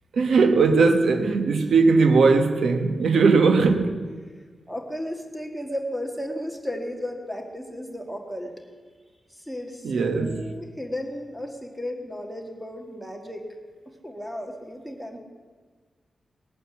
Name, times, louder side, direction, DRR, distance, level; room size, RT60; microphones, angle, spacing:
voice 1, 0.1-4.1 9.8-10.4, right 4 dB, 85° right, 1.0 m, -19 dB
voice 2, 4.7-8.5 9.3-13.5 13.8-15.2, equal, ahead, 1.6 m, -34 dB
19.5 x 9.1 x 6.9 m
wide cardioid pair, 180°, 0 cm